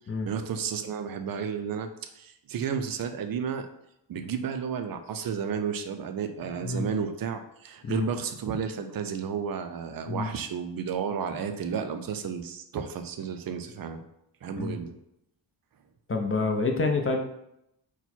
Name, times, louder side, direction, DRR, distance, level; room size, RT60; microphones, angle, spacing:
voice 1, 0.2-1.9 2.1-3.7 4.1-14.0 14.4-14.9, right 7 dB, 50° right, 7 dB, 0.4 m, -32 dB
voice 2, 16.1-17.2, left 3 dB, 30° left, 2 dB, 0.5 m, -27 dB
4.4 x 2.2 x 4.2 m, 0.81 s
wide cardioid pair, 165°, 47 cm